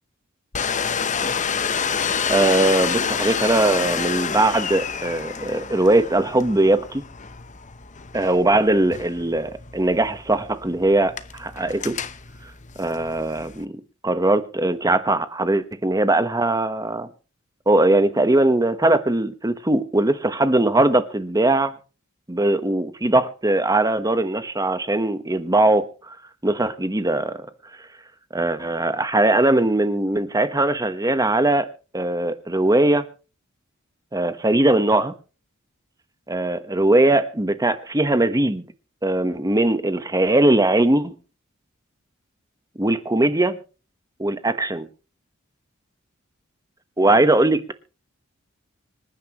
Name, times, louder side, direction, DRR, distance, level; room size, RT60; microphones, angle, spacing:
Domestic sounds home sounds, 0.5-13.6, left 6 dB, 35° left, 0.9 m, -28 dB
voice 1, 2.3-7.0 8.1-12.0 12.8-13.8 14.0-17.1 17.7-21.7 22.3-26.2 26.4-27.5 28.3-31.7 31.9-33.1 34.1-35.1 36.3-38.6 39.0-41.1 42.8-43.6 44.2-44.9 47.0-47.7, right 2 dB, 15° right, 1.2 m, -20 dB
26.0 x 10.0 x 3.1 m
head